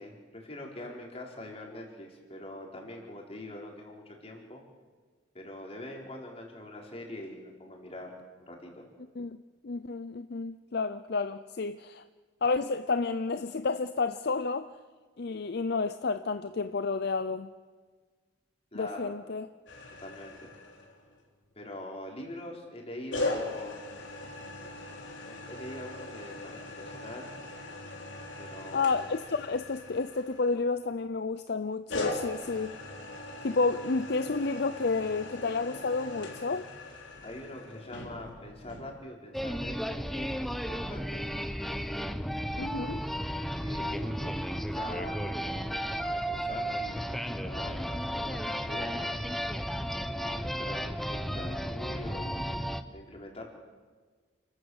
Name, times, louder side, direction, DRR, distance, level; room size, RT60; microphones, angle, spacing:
voice 1, 0.0-4.6 5.3-8.1 8.5-8.8 18.7-19.1 20.0-20.5 21.6-23.8 25.3-27.3 28.4-28.9 37.2-41.2 43.6-49.2 50.2-53.4, left 1 dB, 35° left, 4.5 m, -44 dB
voice 2, 9.6-12.0 12.4-14.7 15.2-17.5 18.7-19.5 28.7-32.8 33.4-36.7 42.6-43.0, left 4 dB, 60° left, 0.6 m, -30 dB
sound 1, 19.7-21.2 23.1-30.9 31.9-38.9, left 2 dB, 80° left, 3.7 m, -40 dB
sound 2, 39.3-52.8, equal, ahead, 0.9 m, -34 dB
29.0 x 13.5 x 8.0 m
head